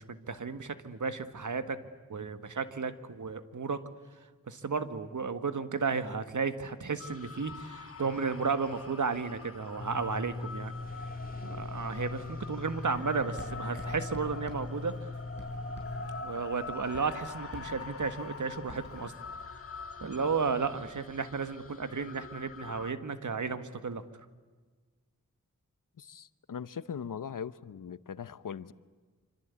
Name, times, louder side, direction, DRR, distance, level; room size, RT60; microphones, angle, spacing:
voice 1, 0.0-1.8 2.1-3.8 4.5-10.7 11.4-14.9 16.2-19.1 20.0-24.0, right 5 dB, 70° right, 10 dB, 1.7 m, -33 dB
sound 1, 7.0-22.9, left 4 dB, 45° left, 1.7 m, -44 dB
sound 2, 9.8-16.2, left 3 dB, 30° left, 3.3 m, -41 dB
Writing, 12.8-19.0, right 1 dB, 35° right, 7.5 m, -49 dB
voice 2, 26.0-28.7, left 7 dB, 85° left, 16 dB, 0.9 m, -40 dB
26.5 x 26.0 x 8.3 m, 1.4 s
wide cardioid pair, 75°, 31 cm